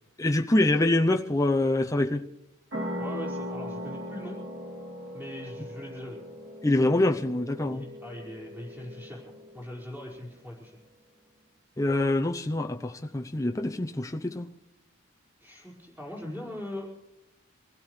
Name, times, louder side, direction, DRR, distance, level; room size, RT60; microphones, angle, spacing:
voice 1, 0.2-2.2 6.6-7.8 11.8-14.5, left 1 dB, 15° left, 3 dB, 0.6 m, -25 dB
sound 1, 2.7-9.9, left 1 dB, 60° right, 2.8 m, -39 dB
voice 2, 3.0-4.4 5.1-6.2 7.7-9.2 9.5-10.7 15.4-16.9, left 1 dB, 10° right, -4 dB, 4.9 m, -40 dB
25.5 x 16.5 x 3.2 m, 0.84 s
head